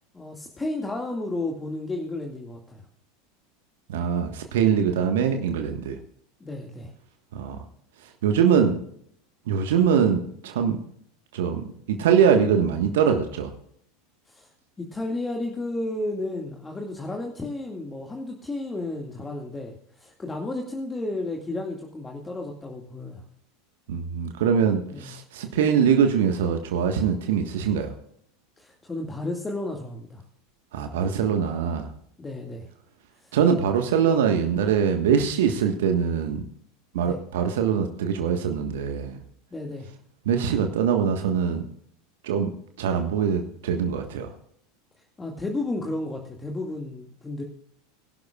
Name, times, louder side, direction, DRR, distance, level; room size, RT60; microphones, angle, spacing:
voice 1, 0.1-2.9 6.4-6.9 14.3-14.5 14.8-23.2 24.9-25.1 28.6-30.2 32.2-32.7 33.2-33.4 36.9-37.2 39.5-39.9 45.2-47.4, left 2 dB, 15° left, 1 dB, 2.1 m, -32 dB
voice 2, 3.9-6.0 7.3-7.6 8.2-8.8 9.5-10.8 11.3-13.5 23.9-27.9 30.7-31.9 33.3-36.5 36.9-39.2 40.2-41.6 42.2-42.5 42.8-44.3, right 7 dB, 65° right, 5 dB, 1.5 m, -23 dB
23.0 x 12.0 x 2.4 m, 0.66 s
figure-of-eight pair, 80°, 0 cm